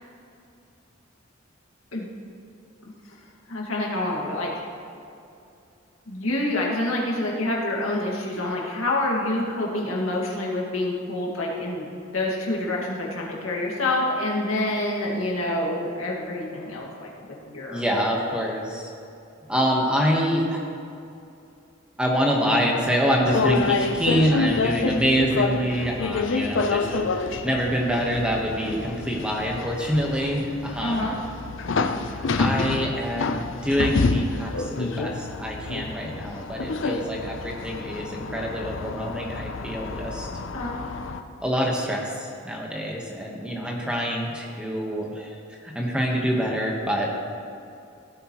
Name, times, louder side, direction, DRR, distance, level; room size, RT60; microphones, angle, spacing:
voice 1, 3.5-4.6 6.1-11.9 12.1-17.8 24.1-24.3 30.8-31.2 40.5-40.8, left 1 dB, 80° left, -3 dB, 2.0 m, -27 dB
voice 2, 17.7-18.9 19.5-20.6 22.0-31.1 32.1-40.3 41.4-47.1, equal, 5° right, -1 dB, 1.1 m, -26 dB
sound 1, 23.2-41.2, left 4 dB, 65° left, 0.5 m, -28 dB
16.0 x 8.1 x 3.0 m, 2.6 s
head